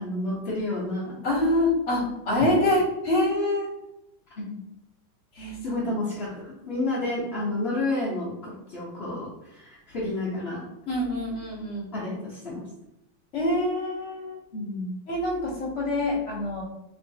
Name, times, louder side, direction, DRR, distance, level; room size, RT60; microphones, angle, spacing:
voice 1, 0.0-1.2 2.6-2.8 4.4-4.6 5.6-10.6 11.9-12.6 14.5-15.0, left 2 dB, 80° left, -8 dB, 0.5 m, -30 dB
voice 2, 1.2-3.7 5.4-5.6 10.9-11.9 13.3-14.4 15.1-16.6, left 1 dB, 50° left, -3 dB, 0.9 m, -25 dB
3.5 x 3.1 x 2.7 m, 0.88 s
omnidirectional pair, 2.3 m